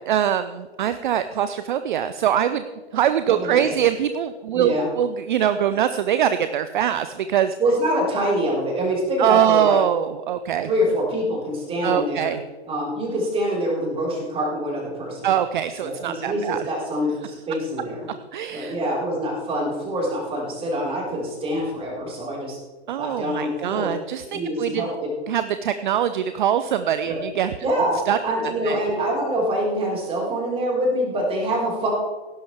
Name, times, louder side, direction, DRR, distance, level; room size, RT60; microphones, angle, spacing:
voice 1, 0.1-2.6 2.9-7.6 9.2-10.7 11.8-12.4 15.2-16.6 18.3-18.7 22.9-24.9 25.3-27.5 28.1-28.2 28.6-28.8, right 10 dB, 45° right, 11 dB, 0.7 m, -23 dB
voice 2, 3.3-3.7 4.5-4.9 7.6-9.8 10.6-12.3 12.7-15.3 15.8-18.1 18.5-22.6 23.0-23.9 24.3-25.1 27.1-27.2 27.6-31.9, equal, 15° right, -3 dB, 4.8 m, -25 dB
17.5 x 11.5 x 3.5 m, 1.3 s
figure-of-eight pair, 110°, 33 cm